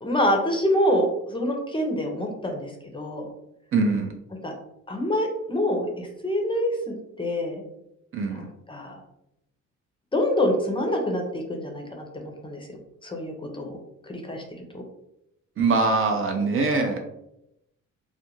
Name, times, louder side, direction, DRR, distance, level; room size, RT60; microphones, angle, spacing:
voice 1, 0.0-3.3 4.4-4.5 4.9-7.6 8.3-9.0 10.1-13.8 14.0-14.8, equal, 15° left, 2 dB, 0.5 m, -26 dB
voice 2, 3.7-4.1 8.1-8.4 15.6-17.0, right 3 dB, 45° right, 3 dB, 0.5 m, -23 dB
2.4 x 2.2 x 3.0 m, 0.83 s
cardioid pair, 90°, 30 cm